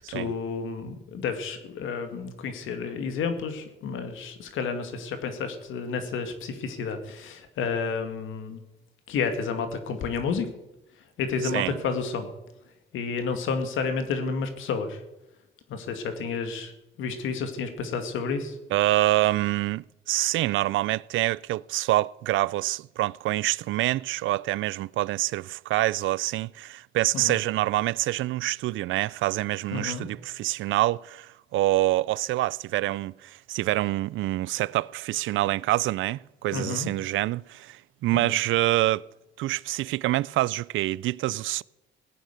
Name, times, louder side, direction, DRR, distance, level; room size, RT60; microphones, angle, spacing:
voice 1, 0.1-8.6 9.1-10.5 11.2-12.3 12.9-15.0 15.7-16.7 17.0-18.6 27.1-27.4 29.7-30.1 36.5-36.9 38.1-38.4, left 5 dB, 80° left, 2.2 m, -30 dB
voice 2, 18.7-39.0 39.4-41.6, right 16 dB, 80° right, 0.4 m, -26 dB
17.0 x 9.2 x 7.0 m
cardioid pair, 90°, 20 cm